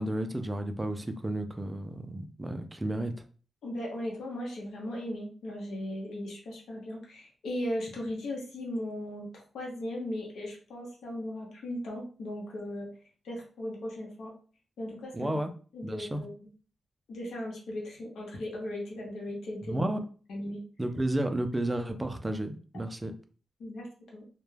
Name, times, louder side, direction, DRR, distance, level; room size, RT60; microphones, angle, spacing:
voice 1, 0.0-3.1 15.1-15.5 15.8-16.2 19.7-20.1 20.8-23.1, right 1 dB, 15° right, 7 dB, 0.3 m, -32 dB
voice 2, 3.6-12.9 13.2-14.3 14.8-15.3 15.7-16.3 17.1-19.8 20.3-20.6 23.6-23.9 24.1-24.2, left 1 dB, 85° left, -2 dB, 0.7 m, -37 dB
2.2 x 2.1 x 3.1 m, 0.40 s
wide cardioid pair, 140°, 0 cm